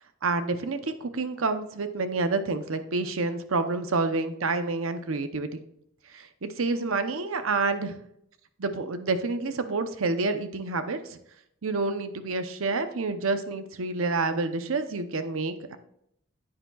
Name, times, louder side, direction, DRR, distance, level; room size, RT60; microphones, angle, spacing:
voice 1, 0.2-5.5 6.1-8.0 8.6-11.2 11.6-15.8, right 3 dB, 85° right, 10 dB, 0.8 m, -28 dB
10.0 x 8.7 x 2.4 m, 0.75 s
head